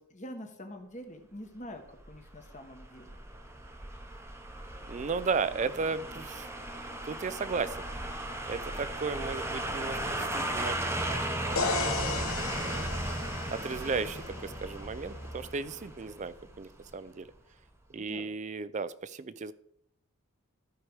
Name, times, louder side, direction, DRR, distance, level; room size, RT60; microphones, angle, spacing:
voice 1, 0.0-3.2 18.0-18.3, equal, 35° left, 4 dB, 1.5 m, -45 dB
sound 1, 2.0-16.9 17.3-17.4, right 1 dB, 10° right, 0.8 m, -36 dB
voice 2, 4.9-6.5 7.0-7.9 8.5-10.8 11.5-12.4 13.5-17.3 17.9-19.5, right 4 dB, 35° right, 16 dB, 0.4 m, -35 dB
sound 2, 11.6-15.4, left 4 dB, 70° left, 1.0 m, -36 dB
14.0 x 4.9 x 4.8 m, 0.72 s
head